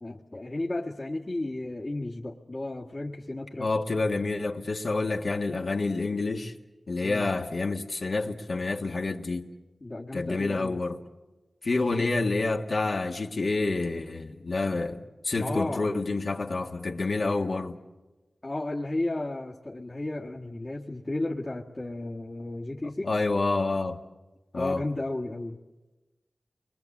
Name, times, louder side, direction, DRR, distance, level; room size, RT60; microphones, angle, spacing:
voice 1, 0.0-3.7 7.0-7.3 9.8-10.8 11.9-12.1 15.4-15.9 18.4-23.1 24.5-25.6, left 2 dB, 40° left, 1.6 m, -33 dB
voice 2, 3.6-6.5 6.9-9.5 10.1-11.0 11.6-17.8 23.0-24.0 24.5-24.8, left 3 dB, 65° left, 1.7 m, -28 dB
29.5 x 22.5 x 7.3 m
wide cardioid pair, 60°, 0 cm